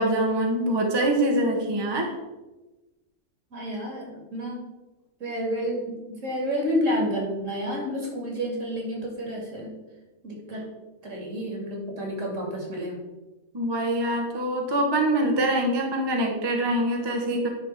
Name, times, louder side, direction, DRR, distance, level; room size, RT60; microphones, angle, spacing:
voice 1, 0.0-2.2 13.5-17.5, right 1 dB, 25° right, 1 dB, 0.7 m, -24 dB
voice 2, 3.5-4.6 5.2-9.7 10.2-10.6 11.0-13.0, equal, 60° right, -1 dB, 2.2 m, -30 dB
10.0 x 3.5 x 4.3 m, 1.1 s
omnidirectional pair, 1.5 m